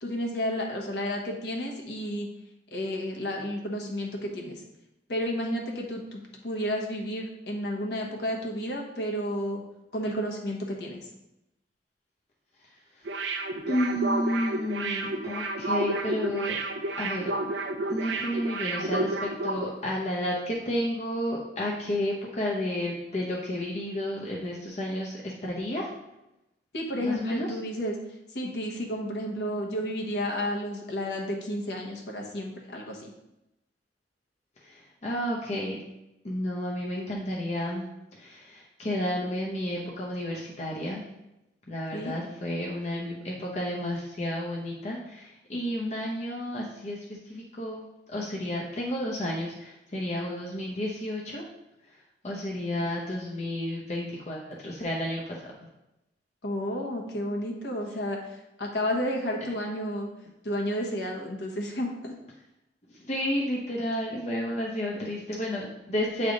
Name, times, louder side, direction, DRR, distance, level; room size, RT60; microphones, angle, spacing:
voice 1, 0.0-2.3 2.7-4.6 5.1-9.6 9.9-11.0 26.7-27.9 28.3-33.1 41.9-42.1 56.4-60.1 60.4-62.2 64.9-65.0, equal, 65° left, 0 dB, 1.2 m, -31 dB
voice 2, 12.6-13.1 13.7-16.6 17.0-17.3 17.9-25.9 27.0-27.5 34.6-35.8 36.2-37.9 38.1-41.0 41.7-51.4 51.9-55.5 62.9-66.3, left 1 dB, 40° left, -3 dB, 0.7 m, -31 dB
sound 1, 13.0-19.7 20.0-20.1, right 2 dB, 80° right, 0.6 m, -31 dB
7.9 x 3.4 x 3.8 m, 0.91 s
head